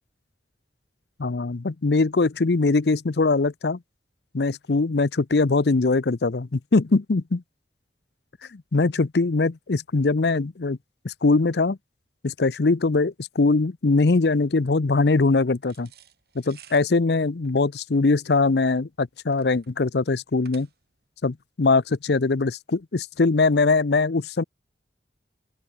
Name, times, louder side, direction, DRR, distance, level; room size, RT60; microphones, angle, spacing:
voice 1, 1.2-3.8 4.3-7.4 8.5-10.8 11.0-11.8 12.2-15.9 16.5-20.7 21.2-24.4, left 3 dB, 65° left, 0.7 m, -22 dB
sound 1, 15.6-21.1, right 9 dB, 60° right, 5.9 m, -54 dB
open air
head